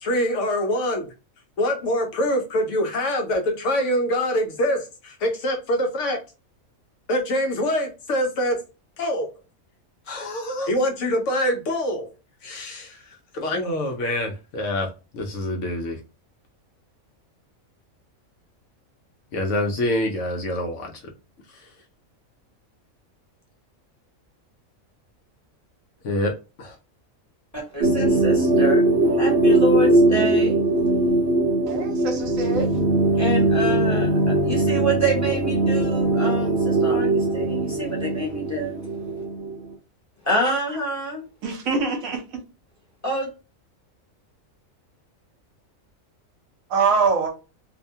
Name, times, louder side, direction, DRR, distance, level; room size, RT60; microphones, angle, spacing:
voice 1, 0.0-1.1 1.6-6.2 7.1-8.6 9.0-9.3 10.1-12.1 12.4-13.0 13.3-14.9 15.1-16.0 19.3-20.9 26.0-26.3 26.6-26.8, left 1 dB, 70° left, 0.9 m, -25 dB
voice 2, 27.7-28.9 29.2-30.6 33.2-38.8 40.2-41.2 43.0-43.3, right 1 dB, 15° left, 0.9 m, -27 dB
sound 1, 27.8-39.7, right 2 dB, 55° right, 0.8 m, -20 dB
voice 3, 31.6-32.7 41.4-42.2 46.7-47.3, right 4 dB, 80° right, 1.2 m, -24 dB
2.7 x 2.2 x 2.6 m
omnidirectional pair, 1.4 m